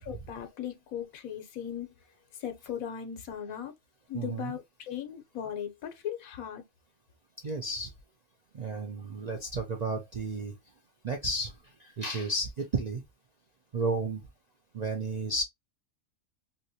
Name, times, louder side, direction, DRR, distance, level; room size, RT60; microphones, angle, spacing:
voice 1, 0.0-1.9 2.4-3.7 4.1-6.6, left 9 dB, 85° left, 1.2 m, -38 dB
voice 2, 4.1-4.5 7.4-7.9 8.5-10.6 11.0-13.0 13.7-14.2 14.7-15.4, right 2 dB, 60° right, 0.4 m, -32 dB
3.0 x 2.8 x 2.7 m
omnidirectional pair, 1.5 m